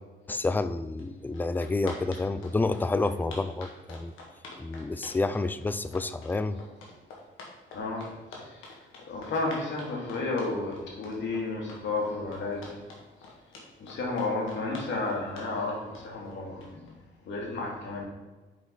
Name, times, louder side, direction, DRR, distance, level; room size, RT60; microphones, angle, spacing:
voice 1, 0.3-4.1 4.6-6.6, left 3 dB, 10° left, 12 dB, 0.4 m, -29 dB
sound 1, 1.0-1.1 1.3-16.9, left 3 dB, 90° left, 1.7 m, -46 dB
voice 2, 7.7-8.0 9.1-12.7 13.8-16.8 17.3-18.0, left 3 dB, 65° left, -2 dB, 2.3 m, -32 dB
7.4 x 4.9 x 3.9 m, 1.2 s
cardioid pair, 90°, 20 cm